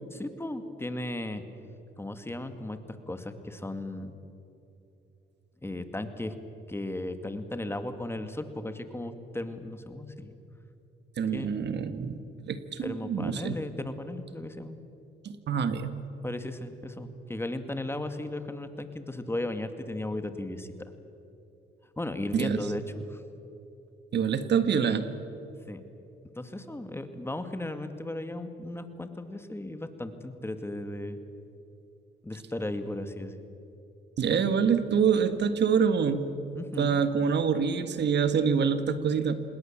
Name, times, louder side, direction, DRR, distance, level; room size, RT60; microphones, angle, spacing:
voice 1, 0.1-1.4 2.0-2.8 3.1-4.1 5.6-6.3 6.7-10.4 11.3-11.5 12.8-14.8 16.2-20.9 22.0-23.2 25.7-25.8 26.4-31.2 32.2-33.4 36.5-37.0, left 1 dB, 10° left, 9 dB, 2.0 m, -36 dB
voice 2, 11.2-12.2 12.5-13.6 15.2-15.9 22.3-22.6 24.1-25.1 34.2-36.3 36.8-39.4, right 6 dB, 60° right, 10 dB, 1.7 m, -26 dB
27.0 x 21.0 x 7.4 m, 2.9 s
cardioid pair, 90°, 20 cm